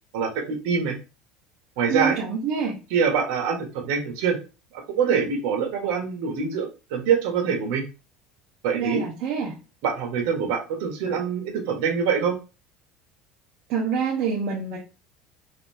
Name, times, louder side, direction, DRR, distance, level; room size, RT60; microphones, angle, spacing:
voice 1, 0.1-1.0 1.8-2.2 2.9-4.4 4.7-7.8 8.6-9.0 9.8-12.4, right 6 dB, 65° right, 1.4 m, -24 dB
voice 2, 1.9-2.8 8.7-9.6 13.7-14.8, right 6 dB, 40° right, 0.9 m, -26 dB
4.1 x 2.7 x 3.4 m
cardioid pair, 175°, 0 cm